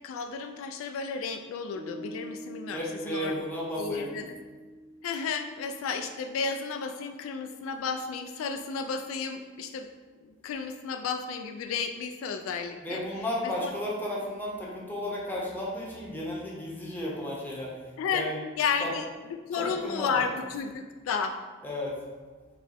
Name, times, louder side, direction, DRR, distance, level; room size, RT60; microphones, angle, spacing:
voice 1, 0.0-3.3 3.8-4.4 5.0-9.9 10.2-13.0 13.4-13.7 18.0-18.3 18.6-19.1 19.5-21.4, left 5 dB, 75° left, 6 dB, 0.3 m, -32 dB
Piano, 1.8-8.5, equal, 40° right, 0.4 m, -47 dB
voice 2, 2.7-4.3 12.8-17.8 18.1-18.4 18.7-18.9 19.5-20.3 21.6-22.0, left 1 dB, 10° left, -4 dB, 0.8 m, -33 dB
5.0 x 2.2 x 4.1 m, 1.4 s
head